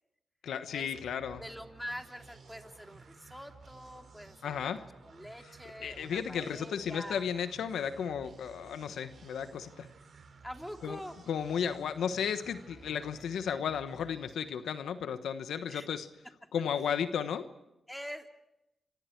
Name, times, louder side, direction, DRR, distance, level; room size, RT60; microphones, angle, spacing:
voice 1, 0.4-1.4 4.4-4.9 5.8-9.9 10.8-11.0 11.3-16.1 16.5-17.4, left 8 dB, 85° left, 10 dB, 1.1 m, -34 dB
sound 1, 0.6-14.4, right 4 dB, 65° right, 5.6 m, -55 dB
voice 2, 1.4-7.3 10.4-11.1 15.7-15.9 17.9-18.3, equal, 5° left, 4 dB, 3.1 m, -45 dB
sound 2, 10.8-15.0, left 3 dB, 60° left, 7.5 m, -62 dB
27.0 x 25.0 x 4.6 m, 0.90 s
cardioid pair, 55°, 0 cm